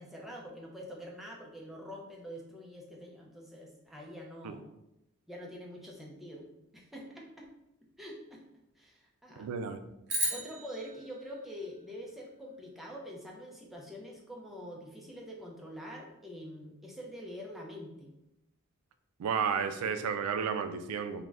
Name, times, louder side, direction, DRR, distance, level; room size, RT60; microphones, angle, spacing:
voice 1, 0.0-4.7 5.3-6.5 6.7-7.5 8.0-8.4 8.8-9.5 10.3-18.1, equal, ahead, -2 dB, 0.4 m, -45 dB
voice 2, 9.4-9.8 19.2-21.2, right 6 dB, 85° right, 9 dB, 0.3 m, -32 dB
sound 1, 10.1-12.5, right 2 dB, 50° right, 0.7 m, -37 dB
2.4 x 2.1 x 3.2 m, 0.90 s
head